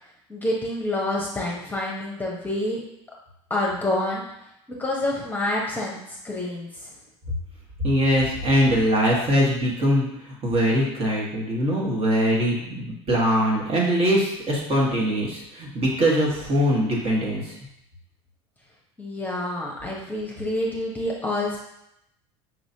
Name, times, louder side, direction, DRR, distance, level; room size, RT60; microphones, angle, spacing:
voice 1, 0.3-2.8 3.5-4.2 4.7-6.9 19.0-21.6, left 1 dB, 10° left, -3 dB, 1.0 m, -27 dB
voice 2, 7.8-17.6, equal, 40° right, -4 dB, 1.6 m, -22 dB
5.8 x 3.0 x 2.8 m, 0.80 s
hypercardioid pair, 85°, 15 cm